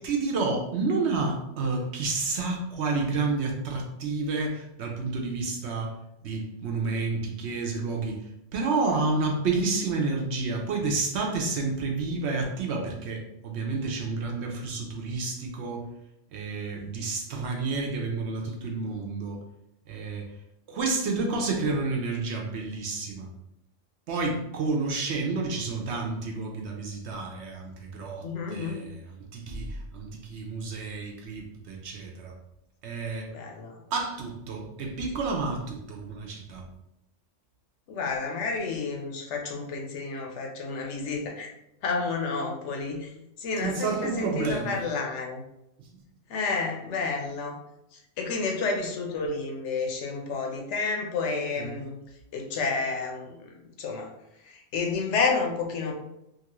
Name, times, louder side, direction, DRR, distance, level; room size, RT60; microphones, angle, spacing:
voice 1, 0.0-6.0 6.2-15.9 16.3-19.4 19.9-20.3 20.7-23.3 24.1-29.0 29.3-32.3 32.8-33.3 33.9-36.7 43.6-44.8 45.8-45.9 51.5-51.8, right 3 dB, 65° right, 1 dB, 0.8 m, -30 dB
voice 2, 28.2-28.8 33.3-33.8 37.9-41.5 41.8-43.1 43.4-45.4 46.3-47.6 47.9-52.0 52.3-53.5 53.8-54.1 54.5-55.9, left 4 dB, 70° left, 1 dB, 0.9 m, -30 dB
2.9 x 2.4 x 2.9 m, 0.85 s
omnidirectional pair, 1.3 m